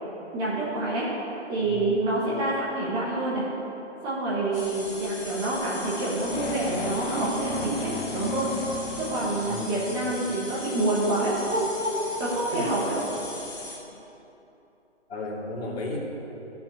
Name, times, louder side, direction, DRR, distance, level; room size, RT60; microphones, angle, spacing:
voice 1, 0.3-1.1 1.5-3.4 4.0-8.5 8.9-13.0, right 2 dB, 10° right, -7 dB, 1.1 m, -27 dB
sound 1, 4.5-13.8, left 2 dB, 10° left, 0.9 m, -39 dB
sound 2, 6.2-10.3, left 3 dB, 40° left, 1.0 m, -35 dB
voice 2, 9.4-9.9 12.5-12.7 15.1-16.0, left 2 dB, 55° left, -3 dB, 2.8 m, -34 dB
12.5 x 6.1 x 7.0 m, 3.0 s
figure-of-eight pair, 150°, 36 cm